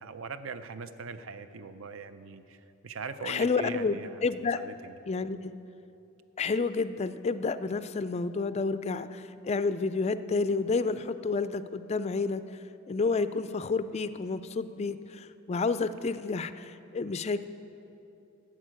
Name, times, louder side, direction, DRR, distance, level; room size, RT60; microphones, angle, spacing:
voice 1, 0.0-2.6 2.8-4.2 4.6-4.9, right 4 dB, 65° right, 11 dB, 0.5 m, -40 dB
voice 2, 3.2-4.6 5.1-5.5 6.4-12.4 12.9-17.4, left 4 dB, 30° left, 13 dB, 0.3 m, -30 dB
11.0 x 7.5 x 9.0 m, 2.8 s
head